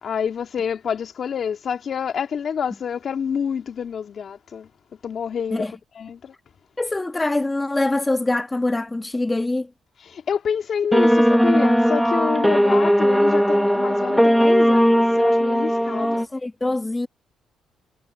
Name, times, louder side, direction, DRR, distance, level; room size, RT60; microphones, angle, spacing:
voice 1, 0.0-4.7 5.0-5.7 5.9-6.3 10.0-16.3, left 7 dB, 55° left, 2.4 m, -28 dB
voice 2, 6.8-9.7 15.9-17.1, left 2 dB, 15° left, 1.8 m, -24 dB
sound 1, 10.9-16.3, equal, ahead, 1.5 m, -18 dB
cardioid pair, 90°, 0 cm